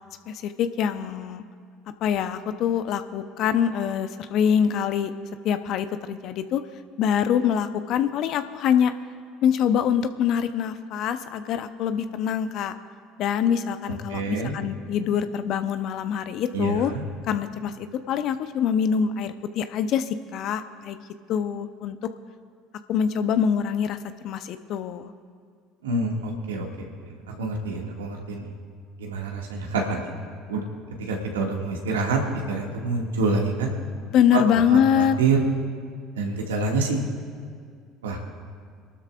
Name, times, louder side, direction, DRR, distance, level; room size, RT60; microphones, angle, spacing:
voice 1, 0.3-1.4 2.0-5.1 5.4-6.6 7.0-8.9 9.4-12.7 13.2-16.9 17.2-21.0 21.3-22.0 22.9-24.0 24.2-25.1 34.1-35.2, left 8 dB, 55° left, 10 dB, 0.8 m, -24 dB
voice 2, 14.1-14.5 16.5-17.0 25.8-26.9 27.3-28.5 29.0-30.1 30.5-30.6 31.0-32.2 32.5-33.7 34.3-34.4 34.7-35.4 36.2-37.0 38.0-38.2, right 3 dB, 85° right, 0 dB, 2.1 m, -27 dB
26.0 x 12.5 x 2.5 m, 2.1 s
hypercardioid pair, 65°, 0 cm